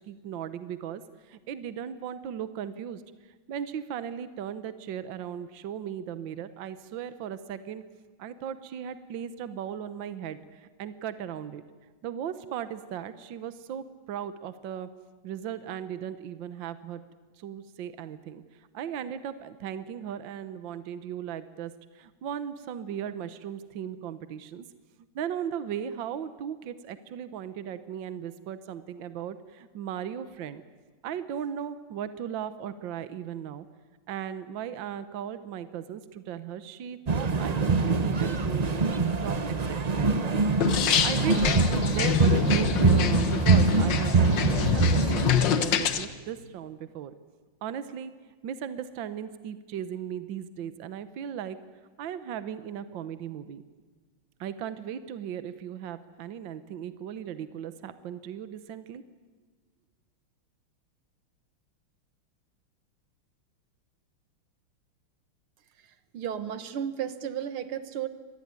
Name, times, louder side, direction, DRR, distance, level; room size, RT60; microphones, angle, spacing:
voice 1, 0.1-1.0 1.3-3.0 3.5-7.8 8.2-11.6 12.0-14.9 15.2-17.0 17.4-18.4 18.7-24.6 25.1-30.6 31.0-33.7 34.1-40.3 41.0-41.5 41.9-47.1 47.6-48.1 48.4-51.6 52.0-53.6 54.4-59.0, right 9 dB, 65° right, 12 dB, 1.6 m, -37 dB
sound 1, 37.1-45.3, right 4 dB, 45° right, 0.5 m, -24 dB
sound 2, 40.6-46.1, left 9 dB, 60° left, 1.7 m, -26 dB
voice 2, 66.1-68.1, right 9 dB, 80° right, 12 dB, 2.1 m, -33 dB
25.5 x 19.5 x 9.6 m, 1.3 s
omnidirectional pair, 2.3 m